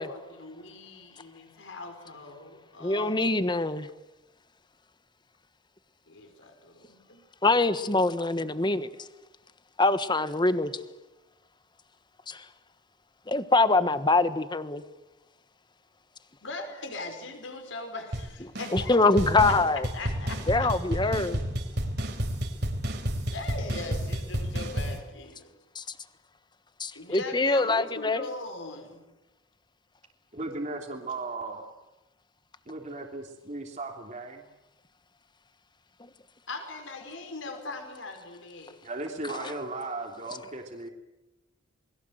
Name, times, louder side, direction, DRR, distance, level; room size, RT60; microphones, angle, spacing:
voice 1, 0.0-3.2 6.1-7.2 16.4-19.0 19.4-19.6 19.9-20.7 21.0-21.2 23.3-25.5 26.9-29.0 36.5-38.8, left 2 dB, 75° left, 6 dB, 4.9 m, -40 dB
voice 2, 2.8-3.9 7.4-8.9 9.8-10.7 12.3-12.4 13.3-14.8 18.7-19.9 20.5-21.4 25.8-25.9 26.8-28.2 39.4-39.5, left 3 dB, 25° left, 12 dB, 1.3 m, -24 dB
sound 1, 18.1-18.3 18.5-18.9 19.2-25.0, equal, 60° right, 3.7 m, -31 dB
voice 3, 30.3-31.7 32.7-34.4 38.8-40.9, right 2 dB, 40° right, 1 dB, 3.1 m, -36 dB
29.0 x 21.5 x 7.9 m, 0.98 s
head